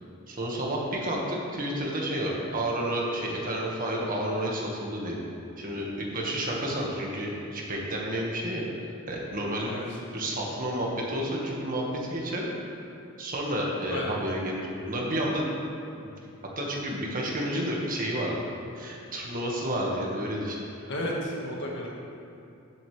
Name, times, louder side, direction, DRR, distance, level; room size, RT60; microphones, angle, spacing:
voice 1, 0.3-5.2 5.6-9.8 10.1-12.8 13.2-15.6 16.0-16.1 16.5-18.4 18.7-20.9, right 1 dB, 40° right, -2 dB, 1.8 m, -30 dB
voice 2, 9.6-10.0 13.9-14.1 20.9-21.9, left 1 dB, 60° left, -2 dB, 1.7 m, -33 dB
15.0 x 8.0 x 3.4 m, 2.7 s
head